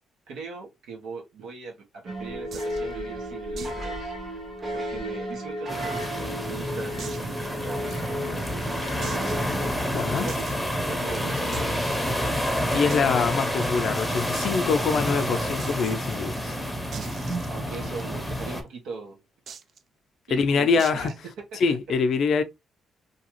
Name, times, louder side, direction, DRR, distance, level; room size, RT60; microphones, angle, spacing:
voice 1, 0.3-4.4 4.7-8.8 10.2-12.0 17.5-19.2 20.3-21.1 21.5-21.6, right 4 dB, 85° right, 0.9 m, -40 dB
sound 1, 2.1-9.7, equal, 30° right, 0.9 m, -34 dB
sound 2, 2.5-2.8 3.6-3.8 4.1-4.2 4.6-4.7 5.3-6.1 7.0-7.3 7.9-8.0 9.0-9.5 10.3-10.5 11.5-12.0 12.9-13.0 13.3-13.4 13.6-13.7 14.3-14.6 15.6-15.9 16.9-18.0 19.5-19.8 20.8-21.2, right 6 dB, 55° right, 0.4 m, -41 dB
sound 3, 5.7-18.6, equal, ahead, 0.7 m, -29 dB
voice 2, 9.9-10.3 12.7-16.5 20.3-21.1 21.6-22.4, left 5 dB, 65° left, 0.5 m, -24 dB
2.8 x 2.3 x 3.0 m
cardioid pair, 90°, 0 cm